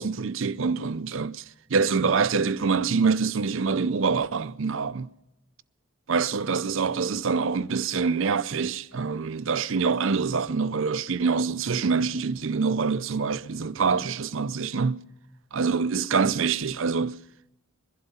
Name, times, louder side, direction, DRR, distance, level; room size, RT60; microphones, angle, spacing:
voice 1, 0.0-1.4 1.7-5.1 6.1-15.0 15.5-17.2, right 5 dB, 65° right, 0.5 m, -25 dB
22.0 x 11.5 x 5.5 m
head